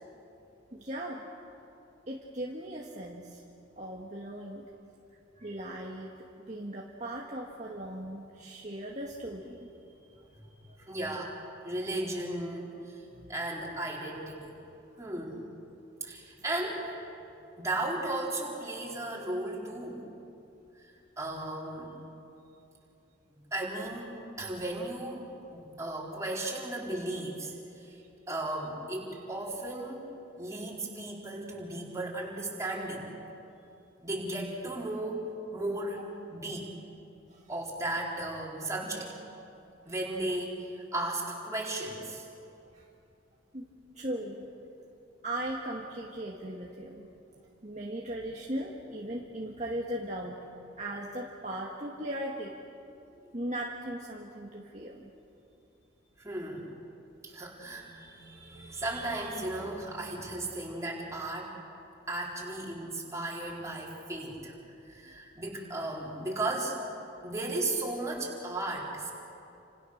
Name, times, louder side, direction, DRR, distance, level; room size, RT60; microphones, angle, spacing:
voice 1, 0.7-1.2 2.1-3.4 3.8-4.6 5.4-6.1 6.5-9.7 13.1-13.2 43.5-43.6 44.0-44.4 45.2-47.1 47.6-50.4 50.8-52.5 53.3-55.1, right 1 dB, 35° right, -2 dB, 1.9 m, -38 dB
voice 2, 10.9-11.3 11.6-13.0 13.3-14.5 15.0-15.4 16.0-16.9 17.6-20.1 21.2-21.9 23.5-33.1 34.0-36.7 37.5-39.1 39.9-42.3 56.2-56.7 57.2-61.6 62.1-64.5 64.9-66.8 67.2-69.1, right 2 dB, 15° right, -3 dB, 4.4 m, -35 dB
30.0 x 27.5 x 6.7 m, 2.7 s
head